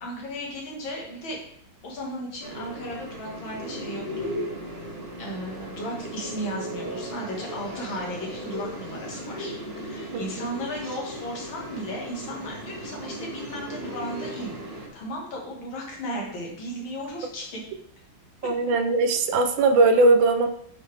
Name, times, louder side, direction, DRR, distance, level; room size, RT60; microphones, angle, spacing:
voice 1, 0.0-1.4 1.8-4.3 5.2-14.5 14.9-17.6, equal, 85° left, -1 dB, 2.3 m, -35 dB
sound 1, 2.4-14.9, equal, 50° right, 2.5 m, -36 dB
voice 2, 10.1-10.4 18.4-20.5, right 3 dB, 80° right, 7 dB, 1.4 m, -20 dB
8.3 x 3.8 x 3.4 m, 0.68 s
omnidirectional pair, 2.1 m